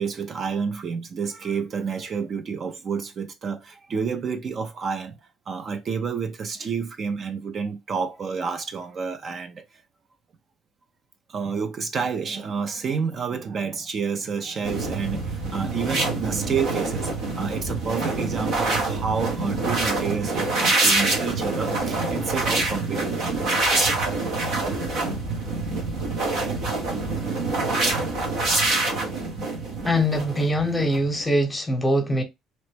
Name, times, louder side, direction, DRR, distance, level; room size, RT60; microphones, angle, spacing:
voice 1, 0.0-9.8 11.3-23.4 24.6-24.8, right 6 dB, 45° right, 0.5 m, -29 dB
sound 1, 14.6-31.3, right 2 dB, 75° right, 1.1 m, -26 dB
voice 2, 29.8-32.2, equal, 15° left, 0.9 m, -22 dB
3.0 x 2.1 x 3.2 m
supercardioid pair, 85°, 0 cm